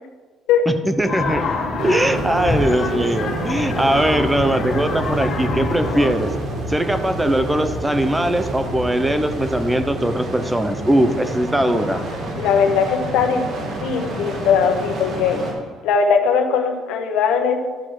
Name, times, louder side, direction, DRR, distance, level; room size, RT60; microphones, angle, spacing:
voice 1, 0.7-1.6 1.8-6.3 6.7-12.0, right 1 dB, 10° right, 9 dB, 0.5 m, -20 dB
sound 1, 1.0-6.1, left 3 dB, 45° left, 1.8 m, -26 dB
sound 2, 1.8-15.5, right 1 dB, 50° right, 2.1 m, -28 dB
sound 3, 11.7-15.8, right 4 dB, 80° right, 1.2 m, -39 dB
voice 2, 12.4-13.4 13.8-15.4 15.8-17.6, left 6 dB, 85° left, 5 dB, 1.1 m, -19 dB
11.5 x 4.8 x 5.8 m, 1.4 s
cardioid pair, 160°, 0 cm